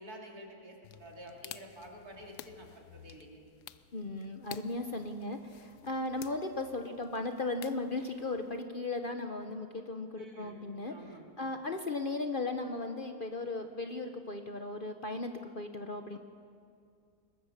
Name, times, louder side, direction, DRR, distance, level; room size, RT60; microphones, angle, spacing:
voice 1, 0.0-3.4 10.1-10.6 10.9-11.3, equal, 70° right, 0 dB, 3.4 m, -49 dB
sound 1, 0.8-8.6, left 11 dB, 90° left, 1.3 m, -52 dB
voice 2, 3.9-11.0 11.4-16.2, left 2 dB, 40° left, 6 dB, 0.9 m, -36 dB
22.0 x 21.0 x 6.6 m, 2.4 s
omnidirectional pair, 1.7 m